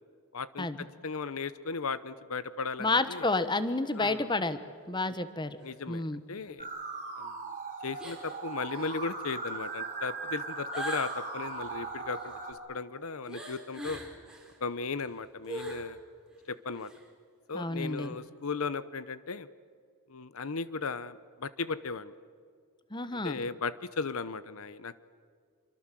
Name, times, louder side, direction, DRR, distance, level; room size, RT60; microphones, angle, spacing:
voice 1, 0.3-0.7 1.0-3.3 4.0-4.3 5.6-6.7 7.2-7.4 7.8-14.0 14.6-16.0 16.5-16.9 17.5-19.5 20.1-22.1 23.1-25.0, left 4 dB, 65° left, 15 dB, 0.8 m, -36 dB
voice 2, 2.8-4.6 4.9-5.6 5.9-6.2 17.5-18.1 22.9-23.4, left 2 dB, 20° left, 12 dB, 1.2 m, -30 dB
sound 1, 3.3-3.5 3.9-4.0 5.6-5.7 6.4-6.5 8.0-8.4 8.7-9.1 10.7-12.4 13.3-14.6 15.0-15.9 16.3-16.4 16.7-17.1 17.8-18.1, right 1 dB, 5° right, 4.1 m, -43 dB
sound 2, 6.6-12.5, right 4 dB, 35° right, 4.2 m, -39 dB
27.5 x 24.0 x 7.6 m, 2.1 s
head